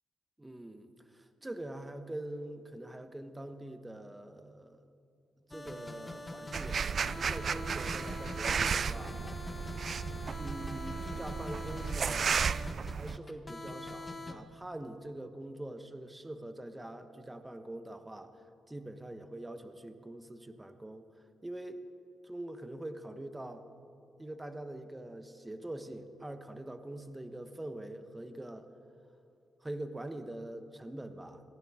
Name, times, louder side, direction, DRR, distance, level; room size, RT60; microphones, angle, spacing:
voice 1, 0.4-4.8 5.5-9.4 10.4-12.6 12.8-18.3 18.7-21.1 21.4-21.8 22.2-23.7 24.2-28.7 29.6-31.4, right 1 dB, 15° right, 8 dB, 1.0 m, -44 dB
sound 1, 5.5-14.3, left 2 dB, 20° left, 1.3 m, -43 dB
sound 2, 6.5-13.2, right 6 dB, 55° right, 0.3 m, -34 dB
23.0 x 15.5 x 3.6 m, 2.7 s
cardioid pair, 95°, 0 cm